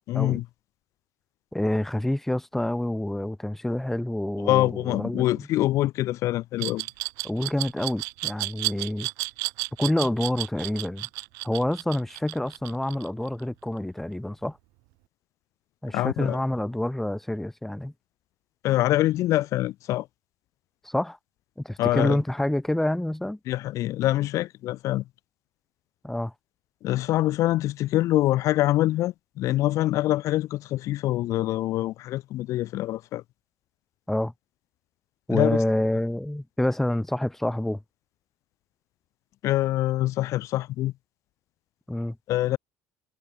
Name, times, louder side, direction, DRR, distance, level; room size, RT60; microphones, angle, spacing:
voice 1, 0.1-0.4 4.4-6.8 15.9-16.4 18.6-20.1 21.8-22.2 23.5-25.0 26.8-33.2 35.3-35.6 39.4-40.9 42.3-42.6, left 15 dB, 60° left, 1.6 m, -25 dB
voice 2, 1.5-5.5 7.2-9.1 9.8-11.1 11.4-14.6 15.8-17.9 20.8-21.2 21.6-23.4 26.0-26.3 34.1-34.3 35.3-37.8 41.9-42.2, left 1 dB, 5° left, 1.7 m, -27 dB
Glass, 6.6-13.4, right 27 dB, 75° right, 1.2 m, -32 dB
supercardioid pair, 85°, 6 cm